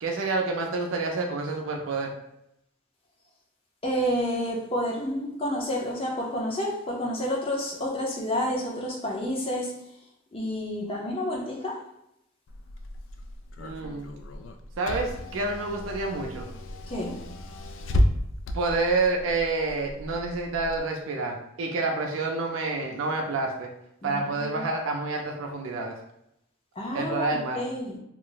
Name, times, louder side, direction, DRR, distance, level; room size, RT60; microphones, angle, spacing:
voice 1, 0.0-2.1 13.6-14.1 14.8-16.5 18.5-23.7 24.0-26.0 26.9-27.6, right 3 dB, 85° right, 2 dB, 0.4 m, -28 dB
voice 2, 3.8-9.7 10.3-11.8 16.9-17.2 24.0-24.2 24.5-24.6 26.8-28.0, equal, 30° left, -2 dB, 0.6 m, -29 dB
Car / Engine, 12.5-20.8, left 1 dB, 75° left, 0.3 m, -32 dB
2.4 x 2.0 x 3.8 m, 0.81 s
head